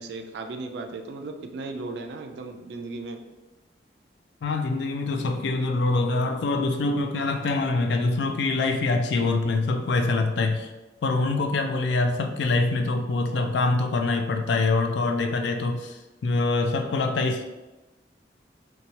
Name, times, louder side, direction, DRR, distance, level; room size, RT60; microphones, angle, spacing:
voice 1, 0.0-3.2, right 3 dB, 65° right, 5 dB, 0.3 m, -36 dB
voice 2, 4.4-10.7 11.0-17.4, left 3 dB, 70° left, 5 dB, 0.3 m, -24 dB
2.8 x 2.2 x 2.8 m, 1.1 s
head